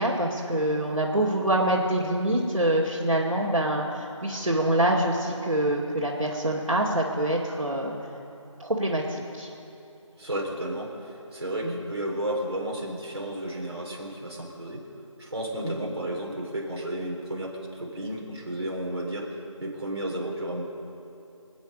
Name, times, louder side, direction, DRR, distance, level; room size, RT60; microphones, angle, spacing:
voice 1, 0.0-7.9 8.6-9.5 11.6-11.7 15.6-15.9, right 1 dB, 85° right, -7 dB, 2.5 m, -25 dB
voice 2, 10.2-14.8 15.2-19.2 19.6-20.6, right 1 dB, 50° right, -2 dB, 3.8 m, -32 dB
26.0 x 9.5 x 5.4 m, 2.8 s
figure-of-eight pair, 175°, 17 cm